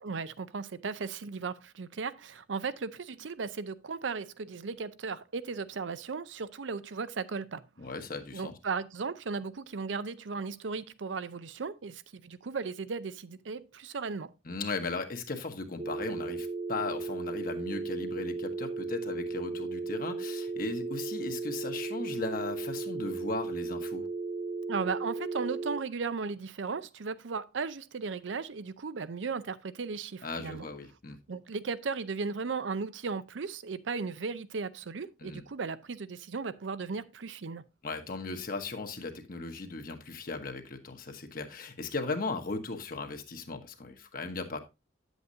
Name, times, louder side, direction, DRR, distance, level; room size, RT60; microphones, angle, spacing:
voice 1, 0.0-7.6 8.3-14.3 24.7-30.7 31.3-37.6, right 4 dB, 90° right, 0.6 m, -36 dB
voice 2, 7.8-8.5 14.4-24.1 30.2-31.2 35.2-35.4 37.8-44.6, left 3 dB, 50° left, 1.2 m, -37 dB
sound 1, 15.8-25.8, right 3 dB, 35° right, 0.5 m, -36 dB
9.3 x 8.1 x 2.7 m
head